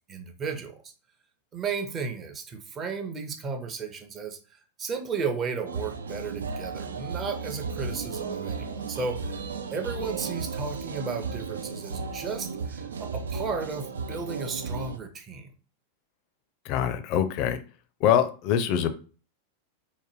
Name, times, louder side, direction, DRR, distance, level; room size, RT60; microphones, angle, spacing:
voice 1, 0.1-0.7 1.5-4.4 4.8-9.3 9.7-15.5, right 5 dB, 25° right, 5 dB, 0.6 m, -34 dB
sound 1, 5.7-15.0, right 5 dB, 70° right, 0.3 m, -34 dB
voice 2, 16.7-17.6 18.0-18.9, left 9 dB, 40° left, 10 dB, 0.4 m, -24 dB
3.7 x 2.1 x 3.1 m, 0.37 s
figure-of-eight pair, 90°, 0 cm